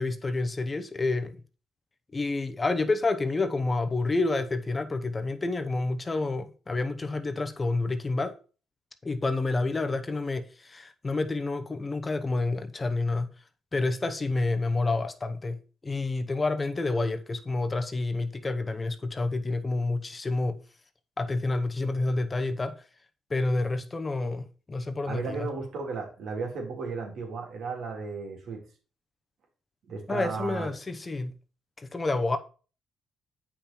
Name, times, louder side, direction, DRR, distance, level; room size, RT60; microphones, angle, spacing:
voice 1, 0.0-1.4 2.1-8.4 9.0-13.3 13.7-20.6 21.2-22.8 23.3-25.5 30.1-31.3 31.8-32.4, left 3 dB, 25° left, 0.9 m, -29 dB
voice 2, 25.0-28.6 29.9-30.7, right 4 dB, 70° right, 3.4 m, -34 dB
8.6 x 5.6 x 4.4 m
cardioid pair, 90°, 0 cm